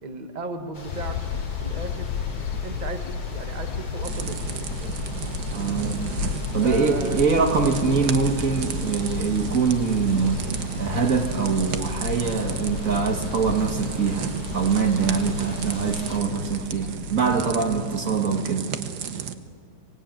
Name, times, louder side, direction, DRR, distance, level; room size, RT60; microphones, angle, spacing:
voice 1, 0.0-1.2 1.6-2.1 2.6-5.0 6.6-7.2, right 3 dB, 25° right, 5 dB, 1.5 m, -36 dB
sound 1, 0.7-16.2, left 1 dB, 60° left, 4.1 m, -40 dB
sound 2, 0.9-17.8, left 6 dB, 85° left, 1.4 m, -33 dB
sound 3, 4.0-19.3, right 8 dB, 70° right, 1.6 m, -34 dB
voice 2, 5.5-6.1 6.5-10.5 10.8-18.7, right 5 dB, 50° right, 5 dB, 1.8 m, -24 dB
25.0 x 19.0 x 9.0 m, 2.1 s
omnidirectional pair, 1.9 m